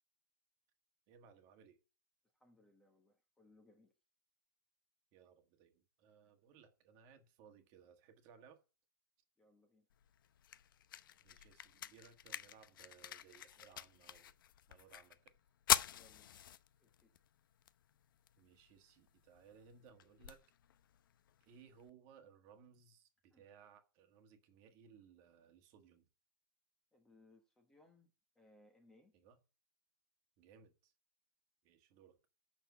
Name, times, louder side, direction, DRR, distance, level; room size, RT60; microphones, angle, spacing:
voice 1, 1.1-1.8 5.1-8.6 11.2-14.3 14.7-15.4 18.4-20.4 21.4-26.1 29.1-29.4 30.4-30.9 31.6-32.2, right 7 dB, 30° right, 1.5 m, -63 dB
voice 2, 2.4-3.9 9.4-9.9 15.9-16.4 16.8-17.2 23.3-23.4 26.9-29.1, left 2 dB, 5° left, 1.1 m, -68 dB
sound 1, 9.9-21.9, left 11 dB, 75° left, 0.7 m, -44 dB
8.2 x 6.5 x 8.1 m
supercardioid pair, 175°, 11 cm